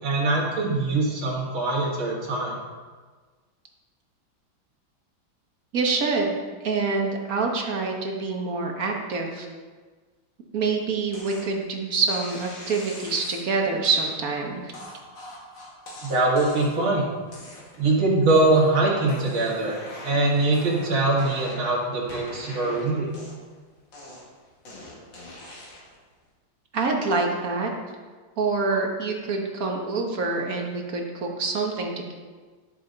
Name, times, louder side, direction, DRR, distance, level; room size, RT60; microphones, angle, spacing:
voice 1, 0.0-2.6 16.0-17.1 17.8-19.8 20.0-23.1, right 2 dB, 90° right, -3 dB, 2.8 m, -22 dB
voice 2, 5.7-6.4 6.6-9.5 10.5-14.7 26.7-27.7 28.4-32.1, right 4 dB, 50° right, 1 dB, 1.4 m, -26 dB
sound 1, 11.1-11.5 12.1-13.4 13.8-14.1 14.7-16.9 17.3-17.9 18.3-18.7 19.0-21.8 22.1-23.6 23.9-26.0, left 1 dB, 65° left, 2.8 m, -42 dB
11.5 x 7.0 x 3.9 m, 1.4 s
omnidirectional pair, 2.2 m